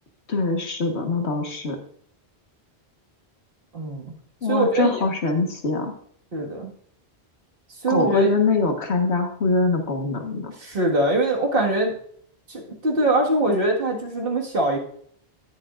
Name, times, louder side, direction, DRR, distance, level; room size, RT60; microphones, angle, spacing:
voice 1, 0.3-1.8 4.4-5.9 7.9-10.5, left 3 dB, 85° left, 4 dB, 1.7 m, -23 dB
voice 2, 3.7-4.1 4.5-5.0 6.3-6.7 7.8-8.3 10.6-11.9 12.5-14.8, right 1 dB, 60° right, -1 dB, 2.0 m, -22 dB
10.5 x 10.0 x 2.5 m, 0.63 s
omnidirectional pair, 1.1 m